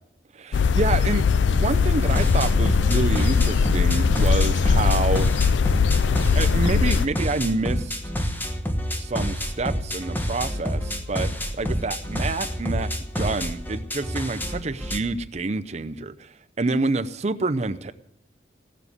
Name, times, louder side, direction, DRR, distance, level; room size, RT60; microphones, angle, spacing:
voice 1, 0.3-5.3 6.4-8.0 9.0-11.3 11.5-17.9, right 3 dB, 35° right, 10 dB, 0.6 m, -27 dB
sound 1, 0.5-7.1, left 5 dB, 85° left, 0.4 m, -20 dB
sound 2, 2.0-15.0, equal, 10° left, 1.2 m, -28 dB
16.5 x 7.2 x 9.7 m, 0.77 s
head